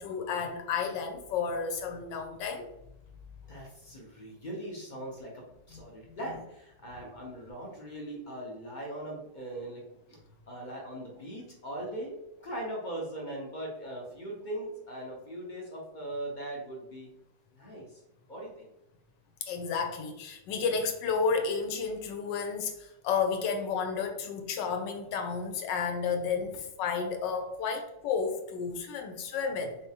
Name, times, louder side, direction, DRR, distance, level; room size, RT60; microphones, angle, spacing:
voice 1, 0.0-2.7 19.4-29.8, left 5 dB, 85° left, 4 dB, 1.3 m, -32 dB
voice 2, 3.5-10.2 10.5-17.1 17.5-18.0 18.3-18.7, right 1 dB, 45° left, -2 dB, 0.6 m, -40 dB
4.0 x 3.4 x 2.8 m, 0.86 s
omnidirectional pair, 1.9 m